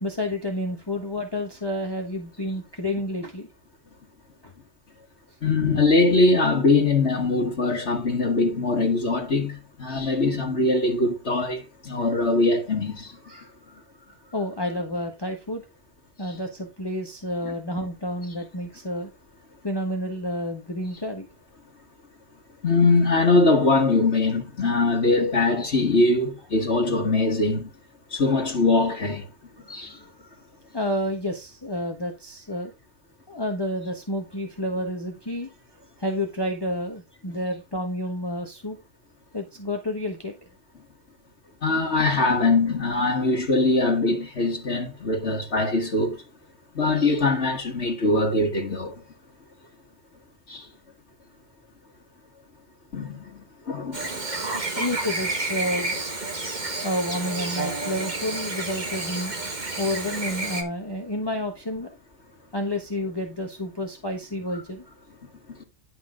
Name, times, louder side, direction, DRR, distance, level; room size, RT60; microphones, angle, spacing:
voice 1, 0.0-3.5 4.4-4.5 13.2-15.6 16.2-19.1 19.6-21.3 29.6-30.4 30.7-32.7 33.3-35.5 36.0-38.8 39.3-40.3 54.8-56.0 56.8-59.3 59.8-62.0 62.5-64.9, left 1 dB, 20° left, 1.3 m, -30 dB
voice 2, 5.4-13.2 17.4-17.5 22.6-27.7 28.1-29.3 29.7-30.0 41.6-46.2 46.8-48.9 50.5-50.6 52.9-54.0 54.7-54.9, left 3 dB, 60° left, 2.0 m, -22 dB
Chirp tweet / Buzz, 53.9-60.6, right 2 dB, 35° right, 1.8 m, -30 dB
11.0 x 5.8 x 3.7 m
omnidirectional pair, 1.3 m